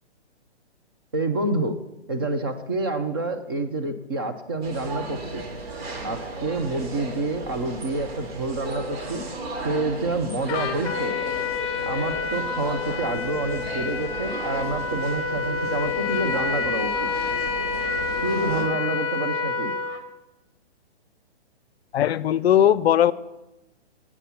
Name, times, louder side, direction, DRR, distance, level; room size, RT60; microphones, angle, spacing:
voice 1, 1.1-1.8 2.1-5.4 6.0-9.3 9.6-11.2 11.9-17.1 18.2-19.7, right 2 dB, 25° right, 7 dB, 0.4 m, -28 dB
sound 1, 4.6-18.6, right 2 dB, 65° right, 2.1 m, -35 dB
Trumpet, 10.5-20.0, left 5 dB, 15° left, 1.0 m, -28 dB
voice 2, 21.9-23.1, left 10 dB, 70° left, 18 dB, 0.5 m, -18 dB
8.2 x 5.4 x 7.1 m, 0.97 s
hypercardioid pair, 145°, 34 cm